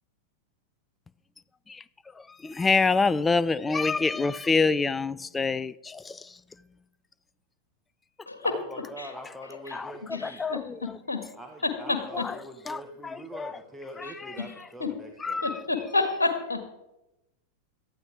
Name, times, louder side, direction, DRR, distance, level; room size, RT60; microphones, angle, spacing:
voice 1, 2.1-6.4 9.7-11.0 12.1-12.3 12.7-13.5 14.0-14.4 15.2-15.6, left 4 dB, 15° left, 0.4 m, -27 dB
voice 2, 8.4-10.4 11.3-15.4, equal, ahead, 1.5 m, -43 dB
voice 3, 10.1-11.2 11.6-12.3 14.0-14.5 14.8-14.9 15.4-16.6, left 3 dB, 75° left, 1.7 m, -29 dB
17.5 x 12.5 x 3.7 m
figure-of-eight pair, 90°, 0 cm